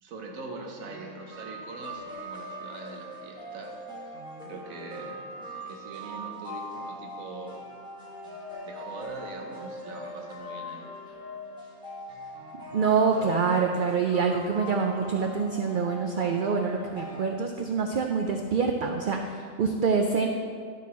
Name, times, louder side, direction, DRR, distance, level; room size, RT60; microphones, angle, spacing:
voice 1, 0.0-3.8 4.4-5.2 5.7-7.6 8.6-10.9, right 3 dB, 85° right, 2 dB, 1.4 m, -42 dB
sound 1, 0.8-17.2, equal, 5° right, 1.5 m, -41 dB
voice 2, 12.7-20.3, right 5 dB, 65° right, 3 dB, 0.5 m, -26 dB
12.5 x 4.1 x 4.1 m, 2.1 s
omnidirectional pair, 1.4 m